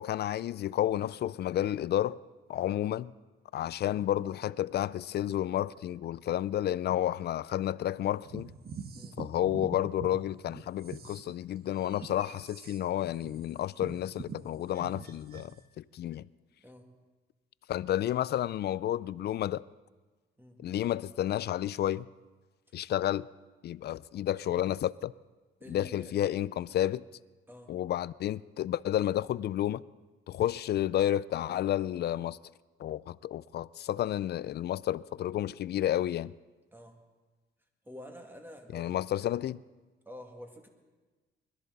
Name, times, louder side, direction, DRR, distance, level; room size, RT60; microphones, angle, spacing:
voice 1, 0.0-2.2 2.5-3.1 3.5-8.5 9.2-16.3 17.7-19.6 20.6-22.1 22.7-23.3 23.6-25.1 25.7-27.0 27.7-29.8 30.3-32.4 32.8-36.3 38.7-39.6, left 12 dB, 55° left, 0.4 m, -31 dB
sound 1, 8.2-10.1 10.5-15.6, right 5 dB, 50° right, 1.2 m, -44 dB
voice 2, 25.6-26.1 27.5-27.7 36.7-37.0 37.8-38.9 40.1-40.7, left 1 dB, 10° right, 2.2 m, -48 dB
21.5 x 13.0 x 4.1 m
cardioid pair, 90°, 20 cm